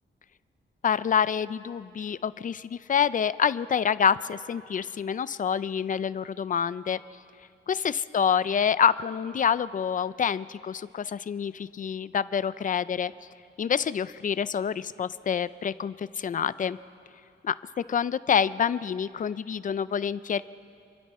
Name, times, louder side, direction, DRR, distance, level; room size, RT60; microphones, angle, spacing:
voice 1, 0.8-7.0 7.7-13.1 13.6-16.8 17.4-17.6 17.9-20.4, left 7 dB, 40° left, 16 dB, 0.4 m, -27 dB
27.5 x 23.0 x 4.3 m, 2.4 s
wide cardioid pair, 150°, 20 cm